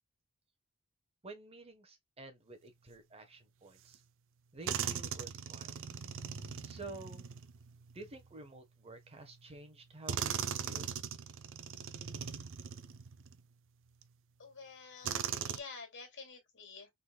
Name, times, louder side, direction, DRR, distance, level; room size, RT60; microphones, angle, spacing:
voice 1, 1.2-4.0 4.5-5.7 6.6-7.3 7.9-10.9, right 2 dB, 30° right, 1.1 m, -50 dB
sound 1, 3.9-4.0 4.6-8.3 9.2-9.3 10.1-13.4 14.0-14.1 15.0-15.6, right 7 dB, 60° right, 0.6 m, -39 dB
voice 2, 14.4-16.9, left 4 dB, 60° left, 2.5 m, -49 dB
5.3 x 4.1 x 2.2 m
head